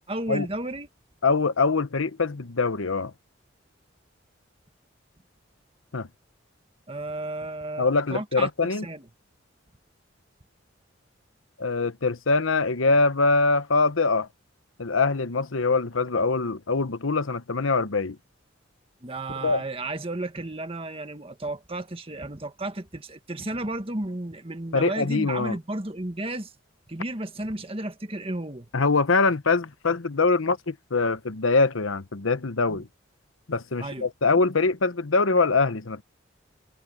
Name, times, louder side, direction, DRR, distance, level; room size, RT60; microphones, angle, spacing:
voice 1, 0.1-0.9 6.9-8.5 8.8-9.0 19.0-26.5 26.9-28.7 32.7-32.8 33.8-34.1, right 2 dB, 30° right, 1.6 m, -33 dB
voice 2, 1.2-3.1 5.9-6.1 7.8-8.9 11.6-14.3 14.8-18.2 19.4-19.6 24.7-25.6 28.7-32.9 33.5-36.0, left 3 dB, 90° left, 1.1 m, -23 dB
head